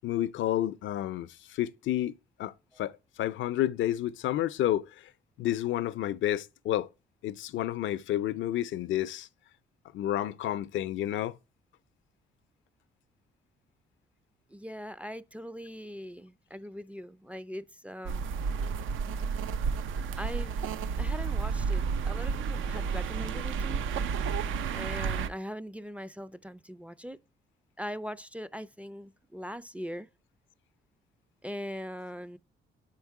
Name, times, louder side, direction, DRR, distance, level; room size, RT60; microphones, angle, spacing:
voice 1, 0.0-2.1 2.4-2.5 2.8-4.8 5.4-6.9 7.2-9.3 9.9-11.3, left 12 dB, 75° left, 0.5 m, -30 dB
voice 2, 14.5-18.3 20.2-23.9 24.7-27.2 27.8-30.1 31.4-32.4, equal, 5° right, 0.4 m, -41 dB
sound 1, 18.0-25.3, right 5 dB, 80° right, 0.5 m, -31 dB
7.8 x 4.5 x 4.6 m
cardioid pair, 90°, 20 cm